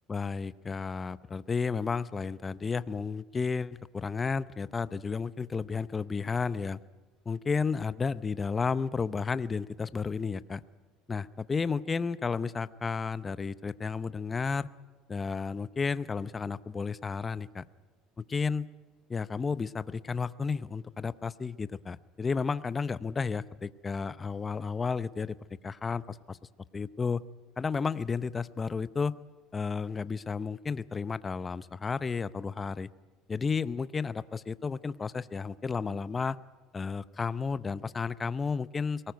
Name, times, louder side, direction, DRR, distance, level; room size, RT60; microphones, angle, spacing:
voice 1, 0.1-6.8 7.3-10.6 11.1-14.7 15.1-17.6 18.2-18.7 19.1-25.4 25.6-26.4 26.7-27.2 27.6-29.1 29.5-32.9 33.3-36.4 36.7-39.0, left 5 dB, 20° left, 15 dB, 0.7 m, -32 dB
23.0 x 19.0 x 9.3 m, 1.3 s
cardioid pair, 125°, 0 cm